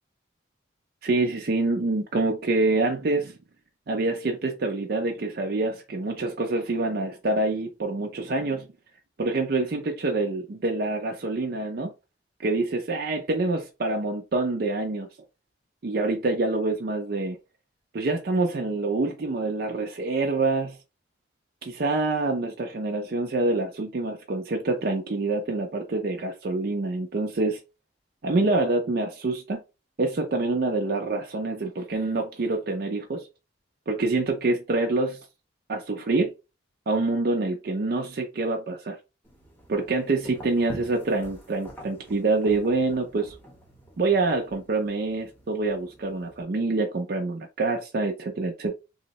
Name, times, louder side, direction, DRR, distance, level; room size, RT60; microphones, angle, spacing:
voice 1, 1.0-3.4 3.9-8.7 9.2-11.9 12.4-15.1 15.8-17.4 17.9-20.8 21.6-27.6 28.2-29.6 30.0-33.3 33.9-35.2 35.7-36.3 36.9-39.0 39.7-43.4 44.0-48.7, right 3 dB, 50° right, 0.4 m, -26 dB
sound 1, 39.2-46.4, right 1 dB, 10° left, 0.8 m, -47 dB
2.7 x 2.0 x 3.9 m
head